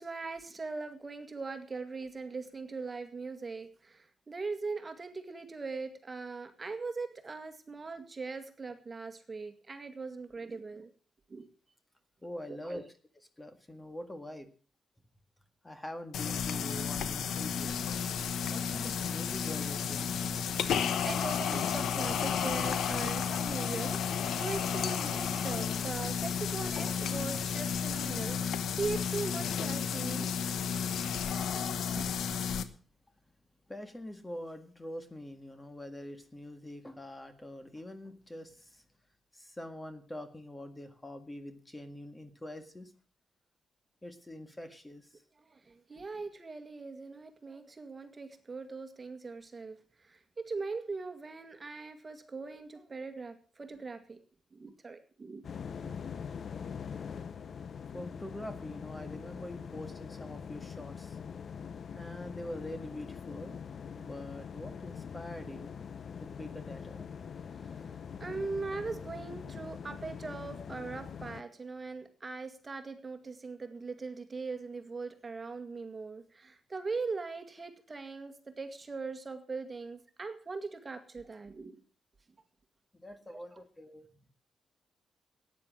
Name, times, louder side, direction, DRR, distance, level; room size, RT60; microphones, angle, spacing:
voice 1, 0.0-10.9 11.3-11.5 12.6-12.8 20.3-30.3 32.0-32.3 45.5-49.8 50.0-54.2 54.5-55.4 55.8-55.9 68.2-81.8, right 4 dB, 30° right, 8 dB, 2.0 m, -40 dB
voice 2, 12.2-12.8 13.4-14.5 15.6-17.9 18.5-20.2 33.7-38.8 39.3-42.9 44.0-45.2 57.9-61.2 61.9-63.6 64.0-65.7 66.2-67.1 82.9-84.1, left 1 dB, 15° left, 9 dB, 1.8 m, -44 dB
sound 1, 16.1-32.6, left 7 dB, 90° left, 1.1 m, -32 dB
sound 2, 55.4-71.4, left 6 dB, 55° left, 0.7 m, -43 dB
13.5 x 9.8 x 7.4 m, 0.40 s
cardioid pair, 110°, 0 cm